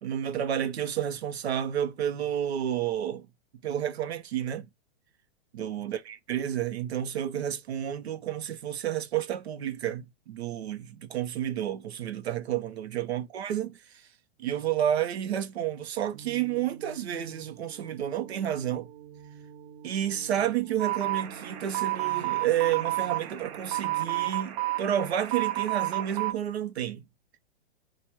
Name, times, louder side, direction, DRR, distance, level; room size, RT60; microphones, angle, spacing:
voice 1, 0.0-3.3 3.6-4.7 5.5-13.8 14.4-18.9 19.8-27.0, right 10 dB, 85° right, 0.9 m, -30 dB
sound 1, 16.1-24.3, right 7 dB, 55° right, 1.4 m, -48 dB
sound 2, 20.8-26.3, right 16 dB, 25° right, 0.4 m, -31 dB
4.6 x 2.5 x 4.3 m
hypercardioid pair, 145°, 31 cm